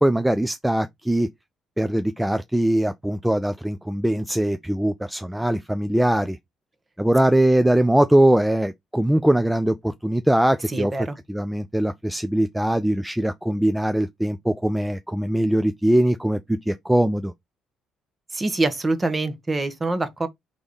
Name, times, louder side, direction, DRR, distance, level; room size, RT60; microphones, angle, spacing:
voice 1, 0.0-1.3 1.8-6.4 7.0-10.9 11.3-17.3, right 1 dB, 5° right, 0.4 m, -21 dB
voice 2, 10.7-11.2 18.3-20.3, right 2 dB, 25° right, 1.0 m, -25 dB
3.5 x 3.4 x 3.9 m
supercardioid pair, 65°, 0 cm